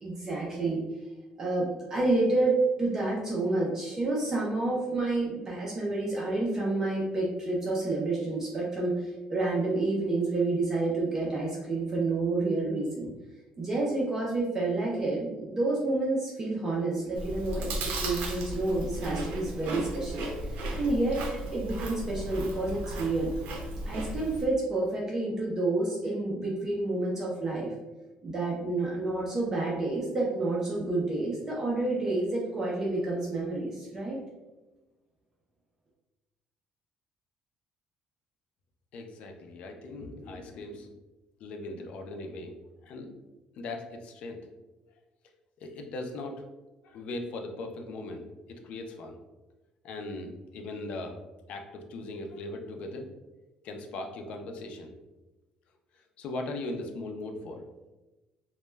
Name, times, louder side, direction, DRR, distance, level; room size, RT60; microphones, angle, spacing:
voice 1, 0.0-0.8 1.4-13.1 13.6-21.2 21.5-23.3 23.9-27.7 28.2-34.2, right 2 dB, 20° right, -4 dB, 0.4 m, -29 dB
Chewing mastication, 17.2-24.5, right 1 dB, 85° right, 0.5 m, -35 dB
voice 2, 38.9-40.9 41.4-42.5 42.8-43.1 43.6-44.4 45.6-46.4 46.8-48.2 48.5-49.2 49.8-51.2 51.5-53.1 53.6-54.9 56.2-57.7, left 2 dB, 55° left, 4 dB, 0.3 m, -39 dB
2.1 x 2.0 x 3.1 m, 1.1 s
cardioid pair, 165°, 2 cm